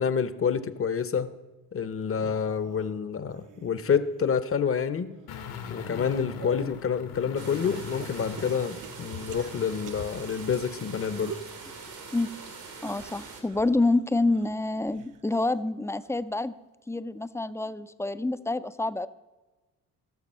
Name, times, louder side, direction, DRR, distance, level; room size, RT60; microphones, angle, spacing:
voice 1, 0.0-1.3 1.7-5.2 5.7-11.4, left 6 dB, 35° left, 14 dB, 0.8 m, -28 dB
sound 1, 2.0-4.3 4.8-6.8 7.6-10.4 10.9-11.6 12.7-15.6 16.0-16.4 17.6-17.7, right 9 dB, 55° right, 0.8 m, -47 dB
sound 2, 5.3-10.2 10.5-10.6, left 6 dB, 75° left, 1.6 m, -40 dB
sound 3, 7.4-13.4, right 4 dB, 85° right, 2.6 m, -43 dB
voice 2, 12.8-16.5 16.9-19.1, left 2 dB, 10° left, 13 dB, 0.4 m, -27 dB
14.5 x 6.6 x 5.6 m, 1.2 s
cardioid pair, 80°, 37 cm